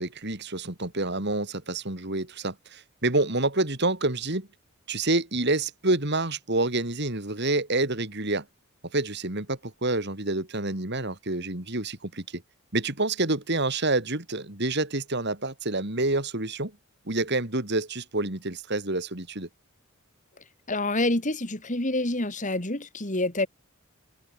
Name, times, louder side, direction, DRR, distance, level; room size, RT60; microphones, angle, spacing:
voice 1, 0.0-4.5 4.9-8.5 8.9-12.4 12.7-16.7 17.0-19.5, right 2 dB, 50° right, 3.5 m, -28 dB
voice 2, 20.7-23.5, left 2 dB, 35° left, 2.9 m, -27 dB
head